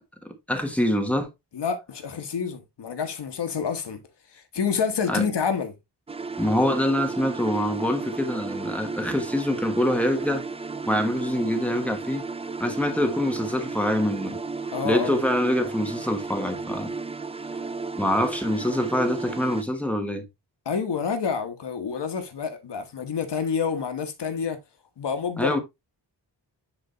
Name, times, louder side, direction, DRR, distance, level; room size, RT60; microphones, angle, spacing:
voice 1, 0.2-1.3 5.1-5.2 6.4-10.4 10.9-12.2 12.6-14.4 14.8-16.9 18.0-20.3 25.4-25.6, left 1 dB, 5° left, 1.3 m, -25 dB
voice 2, 1.5-4.0 4.3-5.7 14.7-15.2 20.6-24.6 25.0-25.6, left 6 dB, 75° left, 1.3 m, -28 dB
sound 1, 6.1-19.6, right 4 dB, 15° right, 0.3 m, -34 dB
9.7 x 3.9 x 3.1 m
wide cardioid pair, 135°, 41 cm